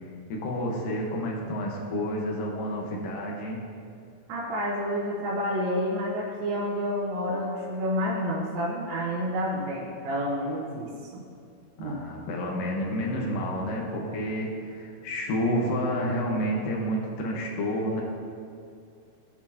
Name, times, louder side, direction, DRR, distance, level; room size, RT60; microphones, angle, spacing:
voice 1, 0.3-3.6 11.8-18.0, equal, 80° left, -1 dB, 2.0 m, -29 dB
voice 2, 4.3-10.9 11.1-11.2 11.8-12.0, equal, 75° right, -7 dB, 3.8 m, -29 dB
19.0 x 7.1 x 2.9 m, 2.4 s
omnidirectional pair, 5.9 m